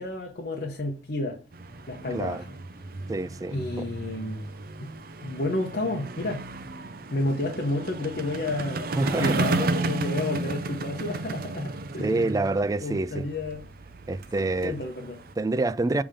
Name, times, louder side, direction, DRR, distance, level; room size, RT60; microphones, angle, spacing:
voice 1, 0.0-1.4 1.9-2.6 3.5-4.5 4.8-4.9 5.2-6.4 7.1-12.5 12.8-13.7 14.6-15.2, left 2 dB, 60° left, 1.0 m, -31 dB
sound 1, 1.5-15.3, right 2 dB, 55° right, 0.6 m, -33 dB
voice 2, 3.1-3.5 9.0-9.4 12.0-13.2 14.1-14.8 15.4-16.0, right 2 dB, 20° right, 0.3 m, -26 dB
7.2 x 3.5 x 5.0 m
head